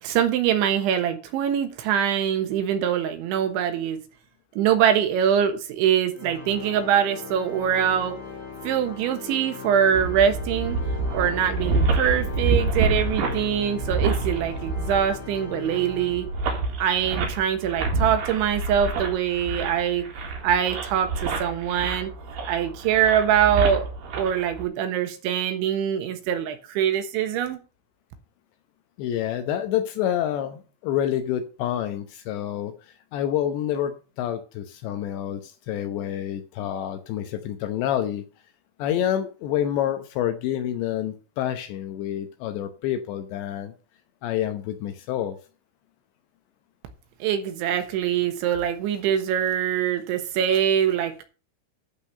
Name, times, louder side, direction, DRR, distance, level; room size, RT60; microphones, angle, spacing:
voice 1, 0.0-4.0 4.6-8.2 8.6-10.8 11.1-16.3 16.8-20.0 20.4-22.1 22.5-23.9 24.2-27.6 47.2-51.2, right 9 dB, 75° right, 3.5 m, -23 dB
Organ, 6.1-16.8, left 6 dB, 45° left, 2.9 m, -39 dB
sound 1, 9.9-24.6, right 3 dB, 55° right, 3.1 m, -28 dB
voice 2, 29.0-32.7 33.1-38.2 38.8-43.7 44.2-45.4, left 11 dB, 75° left, 2.9 m, -28 dB
12.0 x 5.2 x 6.5 m
omnidirectional pair, 5.7 m